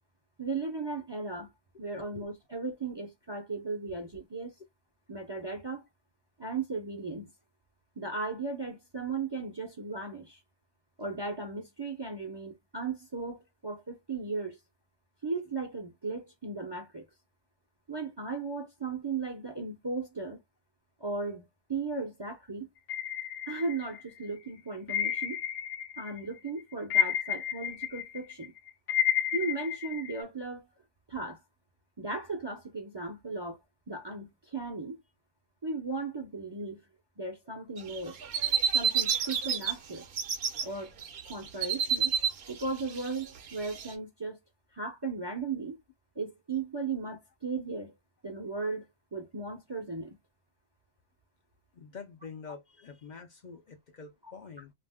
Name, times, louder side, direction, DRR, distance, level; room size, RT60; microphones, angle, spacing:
voice 1, 0.4-1.5 1.8-4.5 5.1-5.8 6.4-7.3 8.0-10.4 11.0-14.6 15.2-17.1 17.9-20.4 21.0-22.7 23.5-25.4 26.0-28.5 29.3-30.7 31.1-31.4 32.0-33.6 33.9-35.0 35.6-36.8 37.2-38.2 38.7-40.1 40.6-41.0 41.3-42.1 42.5-44.4 44.7-45.8 46.2-47.9 48.2-50.2 54.2-54.3, right 3 dB, 40° right, 0.3 m, -36 dB
sound 1, 22.9-24.2 24.9-26.2 26.5-30.2, left 10 dB, 85° left, 1.0 m, -31 dB
sound 2, 37.8-39.7 40.0-40.6 41.0-43.9, right 7 dB, 60° right, 0.8 m, -29 dB
voice 2, 51.7-54.7, left 5 dB, 65° left, 0.4 m, -46 dB
2.5 x 2.1 x 3.3 m
omnidirectional pair, 1.4 m